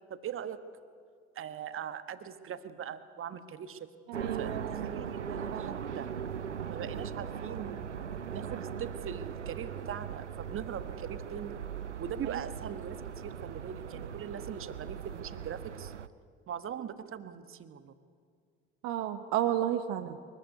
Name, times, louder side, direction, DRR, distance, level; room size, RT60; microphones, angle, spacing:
voice 1, 0.1-0.6 1.3-3.9 4.4-6.1 6.7-8.0 8.3-11.6 12.0-15.9 16.5-17.9, right 8 dB, 40° right, 12 dB, 1.3 m, -41 dB
voice 2, 4.1-5.1 5.5-5.8 12.2-12.4 18.8-20.2, right 11 dB, 55° right, 7 dB, 1.0 m, -33 dB
sound 1, 4.1-16.1, right 7 dB, 90° right, 0.5 m, -39 dB
23.0 x 14.5 x 9.6 m, 2.2 s
figure-of-eight pair, 55°, 34 cm